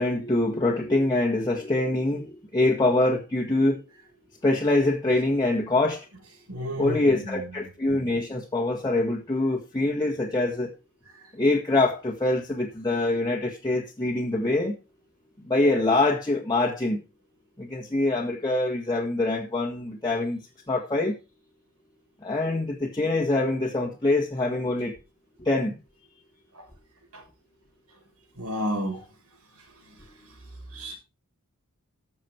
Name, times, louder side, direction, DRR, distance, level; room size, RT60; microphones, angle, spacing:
voice 1, 0.0-3.8 4.4-6.0 6.8-10.7 11.3-14.7 15.4-17.0 17.6-21.2 22.2-24.9 25.4-25.8, left 2 dB, 20° left, 1.8 m, -24 dB
voice 2, 6.5-7.4 27.1-27.2 28.4-29.0 30.7-31.0, equal, 70° right, 6.7 m, -31 dB
14.0 x 7.3 x 4.6 m
head